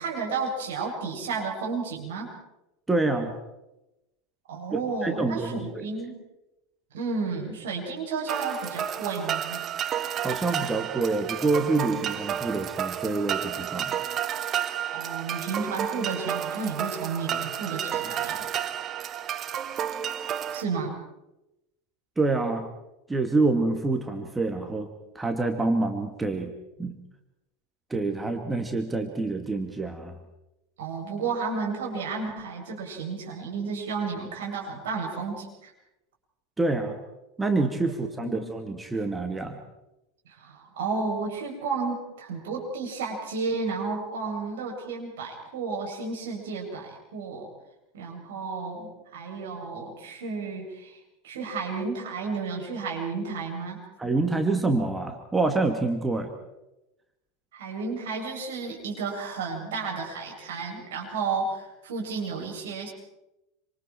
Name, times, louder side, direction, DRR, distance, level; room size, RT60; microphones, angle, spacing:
voice 1, 0.0-2.3 4.5-6.1 6.9-9.6 14.9-18.5 20.5-20.9 30.8-35.7 38.2-38.5 40.3-47.5 47.9-51.0 51.2-53.8 57.5-62.9, right 4 dB, 65° right, 0 dB, 7.6 m, -32 dB
voice 2, 2.9-3.3 4.7-5.9 10.2-13.9 22.2-22.7 23.1-26.5 26.8-27.0 27.9-30.2 36.6-37.0 37.4-39.6 54.0-56.3, right 3 dB, 10° right, 5 dB, 2.4 m, -27 dB
sound 1, 8.3-20.6, right 10 dB, 35° right, 1.2 m, -31 dB
27.5 x 26.5 x 4.6 m, 0.94 s
figure-of-eight pair, 80°, 0 cm